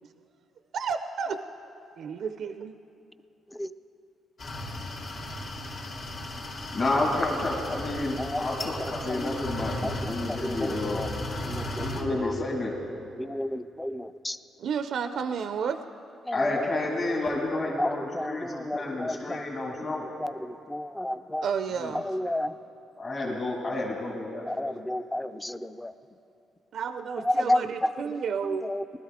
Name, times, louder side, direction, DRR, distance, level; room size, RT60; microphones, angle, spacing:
voice 1, 0.7-1.4 2.0-2.7 14.6-15.8 21.4-22.2 26.7-28.7, right 6 dB, 65° right, 9 dB, 0.4 m, -31 dB
sound 1, 4.4-12.0, left 1 dB, 65° left, 2.5 m, -35 dB
voice 2, 6.7-11.0 11.8-12.8 16.3-20.0 21.8-21.9 23.0-24.5, left 2 dB, 45° left, -4 dB, 2.0 m, -30 dB
voice 3, 9.1-9.5 9.8-9.9 10.3-11.1 11.5-11.9 12.2-12.3 13.2-14.4 16.3-16.4 17.8-19.2 19.8-19.9 20.2-21.4 22.0-22.5 24.5-25.9 27.4-27.6 28.6-28.8, left 1 dB, 10° left, 12 dB, 0.4 m, -31 dB
19.5 x 12.5 x 3.6 m, 2.8 s
cardioid pair, 90°, 0 cm